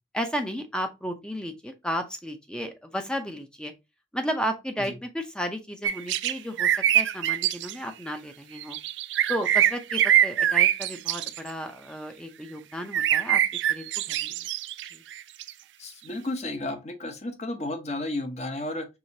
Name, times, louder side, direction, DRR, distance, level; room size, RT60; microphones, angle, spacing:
voice 1, 0.1-3.7 4.1-8.8 9.3-14.4 14.9-15.0, equal, 5° left, 0.6 m, -33 dB
sound 1, 5.8-6.3 6.6-7.7 8.6-11.5 12.9-15.5, right 11 dB, 85° right, 0.3 m, -23 dB
voice 2, 15.8-18.9, left 2 dB, 40° left, 0.8 m, -33 dB
4.8 x 3.4 x 2.7 m
head